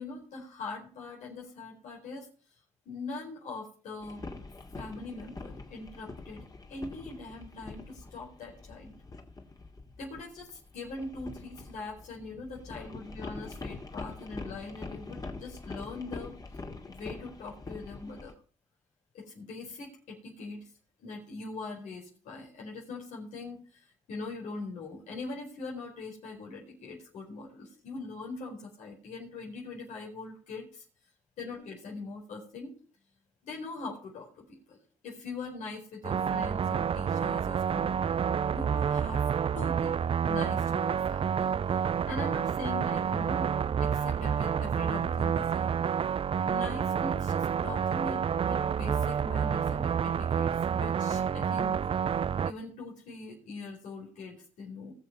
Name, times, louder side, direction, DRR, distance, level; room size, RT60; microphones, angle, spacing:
voice 1, 0.0-2.3 2.8-4.2 4.7-8.9 10.0-16.4 16.9-18.3 19.1-20.7 21.0-30.8 31.4-32.7 33.4-34.8 35.0-38.0 38.5-39.3 39.5-39.9 40.2-43.5 43.8-45.7 46.5-51.8 52.4-54.9, left 3 dB, 85° left, -3 dB, 4.4 m, -42 dB
sound 1, 4.0-18.3, left 3 dB, 30° left, 2.5 m, -44 dB
sound 2, 36.0-52.5, right 7 dB, 50° right, 0.5 m, -29 dB
19.5 x 6.8 x 5.5 m, 0.40 s
cardioid pair, 70°, 12 cm